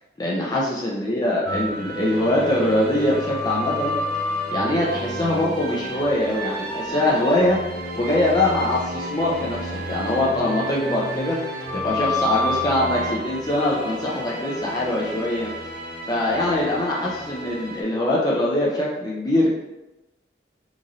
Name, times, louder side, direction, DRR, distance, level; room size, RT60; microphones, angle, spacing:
voice 1, 0.2-3.9 4.5-7.6 8.0-11.4 11.7-15.5 16.0-19.5, left 1 dB, 25° left, -5 dB, 0.4 m, -23 dB
sound 1, 1.4-17.8, equal, 60° right, 0.6 m, -30 dB
3.0 x 2.6 x 2.5 m, 1.0 s
head